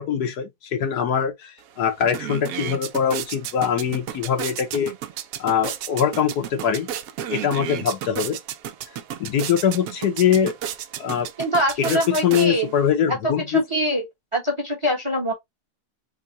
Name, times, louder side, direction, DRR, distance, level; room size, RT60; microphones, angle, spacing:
voice 1, 0.0-4.9 5.4-6.9 7.3-8.4 9.2-10.5 11.0-11.3 11.9-13.6, left 8 dB, 70° left, 1.3 m, -22 dB
sound 1, 1.6-1.7 2.0-12.9, right 10 dB, 70° right, 0.9 m, -33 dB
voice 2, 11.4-12.7 13.1-14.1 14.3-15.3, equal, 25° right, 0.9 m, -24 dB
3.7 x 2.2 x 3.8 m
omnidirectional pair, 1.8 m